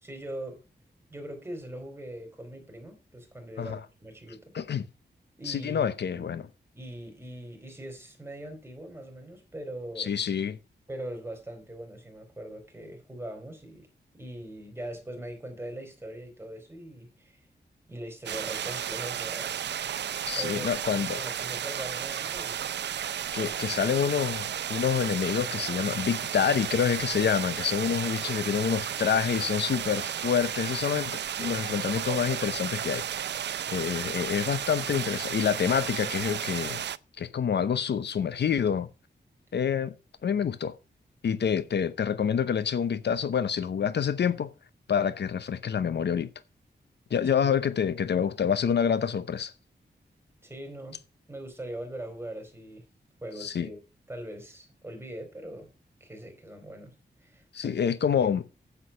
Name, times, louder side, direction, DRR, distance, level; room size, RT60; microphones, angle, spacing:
voice 1, 0.0-0.6 1.1-4.5 5.4-6.5 6.7-10.1 10.9-13.9 14.1-17.4 17.9-19.6 20.3-22.9 23.3-23.8 31.4-31.6 47.2-47.5 50.4-51.0 51.3-52.8 53.2-53.8 54.1-55.7 56.0-56.9 57.2-57.9, right 1 dB, 15° right, 4.3 m, -41 dB
voice 2, 4.5-4.9 5.5-6.4 10.0-10.6 20.3-21.2 23.3-33.1 33.7-36.8 37.2-38.9 39.5-39.9 40.2-40.8 41.2-44.5 44.9-46.3 47.1-49.5 53.4-53.7 57.5-58.5, left 7 dB, 75° left, 0.8 m, -27 dB
sound 1, 18.3-37.0, right 9 dB, 85° right, 0.5 m, -33 dB
9.8 x 8.5 x 4.9 m
wide cardioid pair, 110°, 18 cm